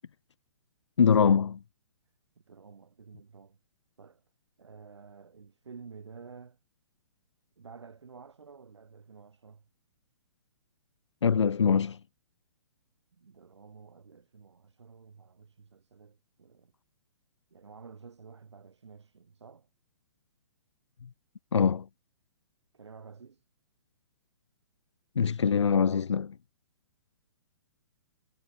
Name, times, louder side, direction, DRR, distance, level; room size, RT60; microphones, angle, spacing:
voice 1, 1.0-1.6 11.2-12.0 21.5-21.9 25.2-26.3, left 6 dB, 80° left, 0.4 m, -23 dB
voice 2, 2.5-3.6 4.0-4.2 4.6-6.6 7.6-9.7 13.2-16.7 17.5-19.7 22.7-23.4, right 5 dB, 75° right, 1.4 m, -51 dB
figure-of-eight pair, 125°, 15 cm